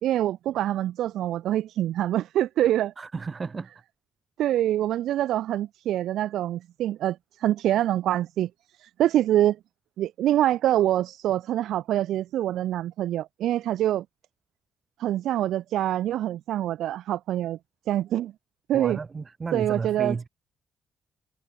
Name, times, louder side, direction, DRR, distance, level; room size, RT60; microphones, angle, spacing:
voice 1, 0.0-2.9 4.4-8.5 8.8-9.6 10.0-14.0 15.0-17.6 17.9-18.3 18.7-19.0 19.5-20.3, right 12 dB, 80° right, 0.4 m, -25 dB
voice 2, 3.0-3.7 18.7-20.3, right 4 dB, 35° right, 6.9 m, -33 dB
cardioid pair, 90°, 0 cm